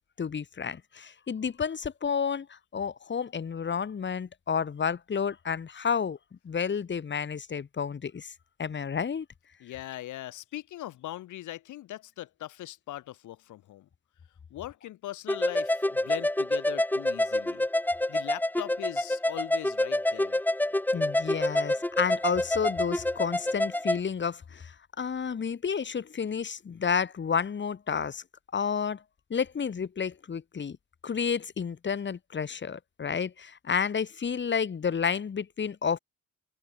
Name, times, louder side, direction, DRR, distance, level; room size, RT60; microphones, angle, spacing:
voice 1, 0.2-6.2 6.4-8.3 8.6-9.3 20.9-28.2 28.5-29.0 29.3-30.8 31.0-36.0, left 6 dB, 40° left, 1.9 m, -31 dB
voice 2, 9.6-13.9 14.5-17.6 18.1-20.4, left 14 dB, 80° left, 1.5 m, -40 dB
sound 1, 15.3-24.0, left 1 dB, 5° left, 1.0 m, -27 dB
open air
cardioid pair, 90°, 30 cm